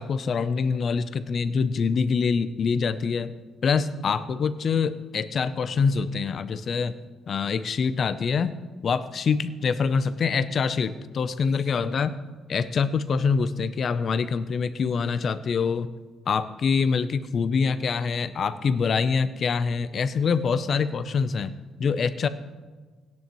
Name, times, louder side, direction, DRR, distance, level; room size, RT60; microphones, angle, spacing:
voice 1, 0.0-3.3 3.6-7.0 7.3-8.5 8.8-12.2 12.5-15.9 16.3-21.5 21.8-22.3, left 5 dB, 55° left, 13 dB, 0.6 m, -25 dB
16.5 x 10.5 x 3.1 m, 1.4 s
cardioid pair, 90°, 0 cm